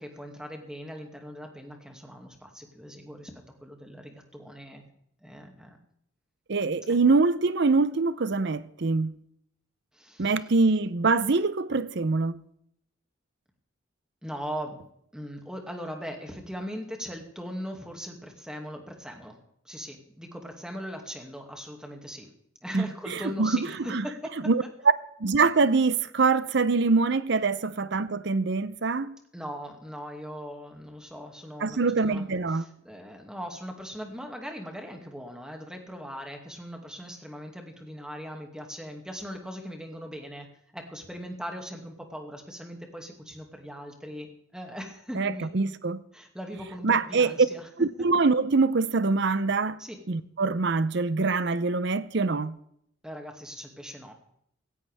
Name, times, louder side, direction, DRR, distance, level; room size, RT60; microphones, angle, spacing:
voice 1, 0.0-4.9 5.2-5.8 9.9-10.4 14.2-14.9 15.1-19.4 19.6-22.3 22.6-24.5 29.3-40.5 40.7-45.5 46.1-47.7 49.8-50.0 53.0-54.2, equal, 5° right, 2.2 m, -40 dB
voice 2, 6.5-9.1 10.2-12.4 22.7-23.6 23.9-24.0 24.5-24.6 25.2-29.2 31.6-32.6 45.1-46.0 46.8-47.3 47.8-49.8 50.1-52.5, right 4 dB, 55° right, 0.6 m, -24 dB
17.0 x 16.5 x 3.5 m
head